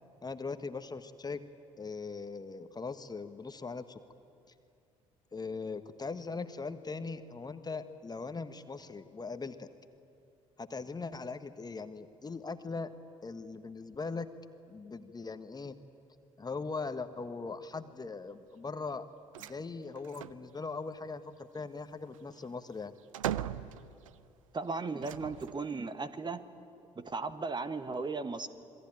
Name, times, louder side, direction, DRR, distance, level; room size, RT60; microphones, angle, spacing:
voice 1, 0.2-1.4 1.8-4.0 5.3-9.7 10.6-12.9 13.2-14.3 14.7-15.8 16.4-19.1 19.4-22.9, left 4 dB, 25° left, 10 dB, 1.3 m, -40 dB
sound 1, 19.3-19.6 20.0-20.4 21.8-24.3 25.0-25.7, right 11 dB, 75° right, 0.6 m, -39 dB
voice 2, 24.5-26.4 27.0-28.5, right 4 dB, 25° right, 11 dB, 1.4 m, -36 dB
27.0 x 22.0 x 9.0 m, 2.5 s
figure-of-eight pair, 50°, 17 cm